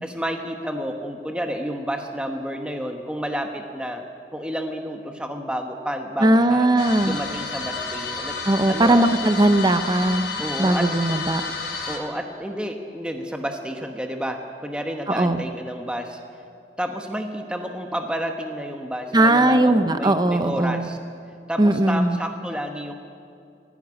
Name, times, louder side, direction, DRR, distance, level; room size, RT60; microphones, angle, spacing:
voice 1, 0.0-4.0 4.3-6.7 7.0-8.4 8.7-9.1 10.4-10.9 11.9-16.2 16.8-21.0 21.5-22.9, equal, 5° right, 3 dB, 1.1 m, -30 dB
voice 2, 6.2-7.2 8.4-10.3 10.6-11.4 15.1-15.4 19.1-20.9 21.6-22.2, right 1 dB, 25° right, 9 dB, 0.8 m, -19 dB
sound 1, 6.8-12.0, left 4 dB, 75° left, 3.0 m, -31 dB
18.0 x 15.5 x 9.7 m, 2.4 s
head